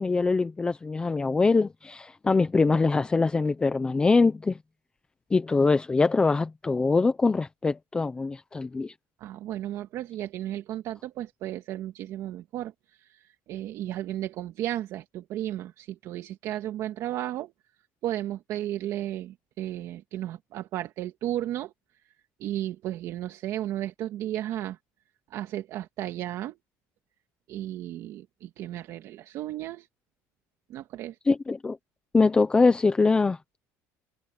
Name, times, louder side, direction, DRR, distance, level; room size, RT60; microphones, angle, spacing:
voice 1, 0.0-4.6 5.3-8.9 31.3-31.8 32.1-33.4, left 4 dB, 15° left, 0.9 m, -23 dB
voice 2, 9.2-17.5 18.0-21.7 22.4-24.8 25.3-26.6 27.5-29.9 30.7-31.2, right 13 dB, 50° right, 2.0 m, -34 dB
cardioid pair, 150°, 7 cm